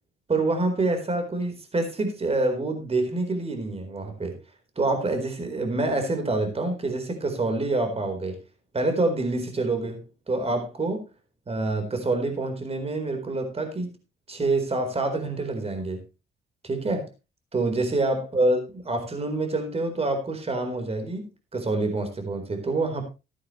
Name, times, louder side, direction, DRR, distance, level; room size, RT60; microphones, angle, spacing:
voice 1, 0.3-4.4 4.8-8.4 8.7-11.0 11.5-13.9 14.3-16.0 16.6-17.1 17.5-23.0, right 2 dB, 30° right, 6 dB, 4.2 m, -27 dB
14.0 x 11.0 x 3.2 m, 0.28 s
cardioid pair, 90°, 20 cm